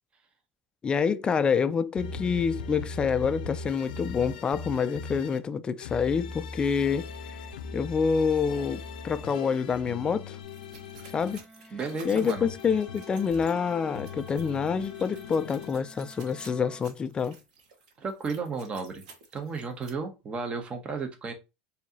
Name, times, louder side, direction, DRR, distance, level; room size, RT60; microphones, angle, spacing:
voice 1, 0.8-7.1 7.7-10.4 11.1-11.4 12.0-17.4, left 6 dB, 20° left, 0.3 m, -27 dB
sound 1, 2.0-5.4 5.8-11.4 11.8-15.7, left 4 dB, 90° left, 0.5 m, -40 dB
Wind instrument woodwind instrument, 5.4-16.9, right 2 dB, 5° right, 2.2 m, -54 dB
sound 2, 10.4-19.9, right 5 dB, 80° right, 1.2 m, -54 dB
voice 2, 11.7-12.5 18.0-19.0 19.3-21.3, right 4 dB, 25° right, 1.0 m, -33 dB
4.5 x 2.7 x 2.8 m
supercardioid pair, 120°, 4 cm